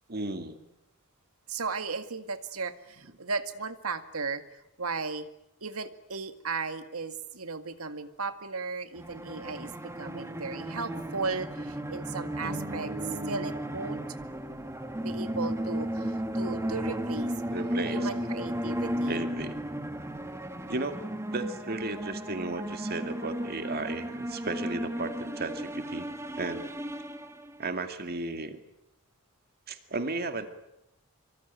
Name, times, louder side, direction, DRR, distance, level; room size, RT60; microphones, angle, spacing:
voice 1, 0.1-0.6 12.4-13.5 17.5-18.1 19.1-19.6 20.7-26.1 26.4-26.6 27.6-28.6 29.7-30.5, right 2 dB, 45° right, 7 dB, 2.4 m, -35 dB
voice 2, 1.5-4.4 4.8-5.3 5.6-12.9 13.3-14.0 15.0-17.3 17.9-19.2, right 4 dB, 80° right, 9 dB, 2.0 m, -36 dB
sound 1, 9.0-27.7, right 1 dB, 15° right, 1.7 m, -34 dB
25.5 x 24.5 x 9.3 m, 0.84 s
head